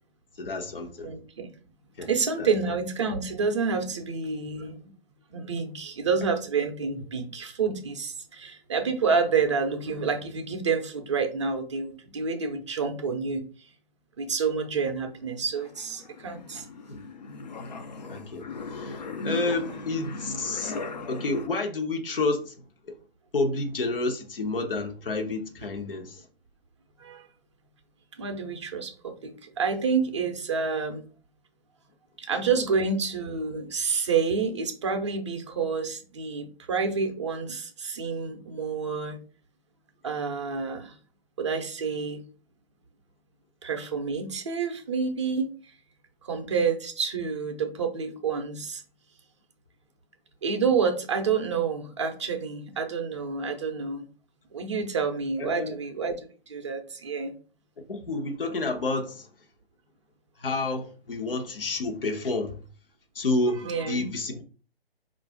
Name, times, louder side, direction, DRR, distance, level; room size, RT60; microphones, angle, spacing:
voice 1, 0.4-1.1 2.0-2.1 2.4-2.5 16.9-17.0 18.1-20.8 21.1-22.9 23.3-26.2 55.4-55.8 57.9-59.3 60.4-62.6 63.1-64.4, left 2 dB, 65° left, 0.9 m, -30 dB
voice 2, 1.0-1.5 2.0-4.9 5.3-13.4 14.2-16.7 27.0-27.3 28.2-31.0 32.2-39.2 40.0-40.9 41.4-42.2 43.6-45.7 46.2-48.8 50.4-54.0 54.5-57.3 63.6-64.0, right 5 dB, 30° right, 0.5 m, -28 dB
sound 1, 15.0-21.5, left 3 dB, 45° left, 0.5 m, -38 dB
4.7 x 2.5 x 3.4 m
figure-of-eight pair, 135°, 31 cm